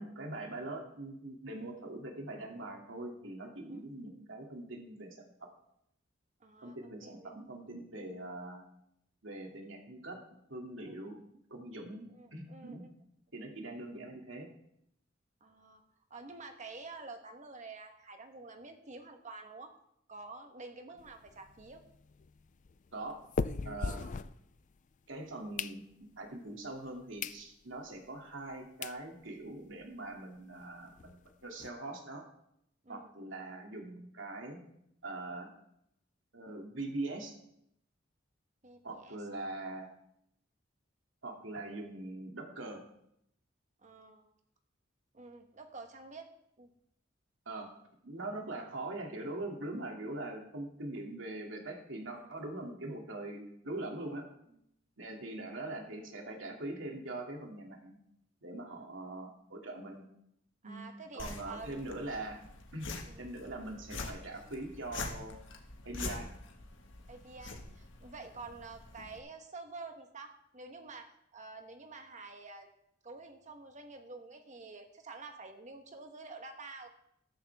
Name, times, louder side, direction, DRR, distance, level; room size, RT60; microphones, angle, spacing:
voice 1, 0.0-5.5 6.6-8.6 9.2-11.2 11.5-12.8 13.3-14.5 22.9-23.2 23.6-24.0 25.1-25.8 26.2-31.2 31.4-32.3 32.9-34.6 35.0-35.5 36.3-37.4 38.8-39.9 41.2-42.8 47.5-47.7 48.0-54.3 55.0-58.0 58.4-60.1 60.6-60.8 61.1-62.4 62.7-62.9 63.2-65.3 65.8-66.3, right 2 dB, 75° right, 1 dB, 2.6 m, -42 dB
voice 2, 6.4-7.3 10.8-11.0 12.1-12.9 15.4-15.8 16.1-19.7 20.1-21.8 24.0-24.1 32.8-33.1 38.6-39.2 43.8-44.3 45.1-46.3 46.6-46.7 55.5-55.6 58.7-58.9 60.6-61.8 63.1-63.2 67.1-72.7 73.0-76.9, right 3 dB, 40° right, 5 dB, 1.2 m, -49 dB
sound 1, 21.0-24.9 25.3-26.3 26.8-26.9 27.2-27.4 27.9-28.0 28.5-28.6 28.8-29.0 29.4-29.5 29.7-29.8 30.1-30.2 30.5-31.7, left 4 dB, 40° left, 0.4 m, -40 dB
sound 2, 61.2-69.2, left 3 dB, 70° left, 1.6 m, -45 dB
14.0 x 13.5 x 3.5 m, 0.76 s
head